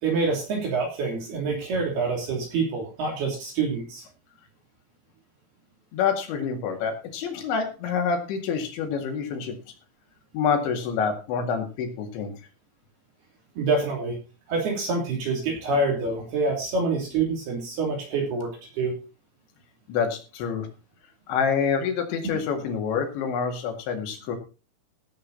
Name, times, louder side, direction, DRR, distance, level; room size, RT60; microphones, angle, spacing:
voice 1, 0.0-4.0 13.6-14.2 14.5-18.9 22.2-22.4, right 3 dB, 60° right, 0 dB, 4.8 m, -26 dB
voice 2, 5.9-9.6 10.3-12.4 19.9-20.7 21.3-24.4, left 6 dB, 70° left, 4 dB, 4.4 m, -27 dB
17.0 x 8.2 x 4.1 m, 0.32 s
omnidirectional pair, 5.4 m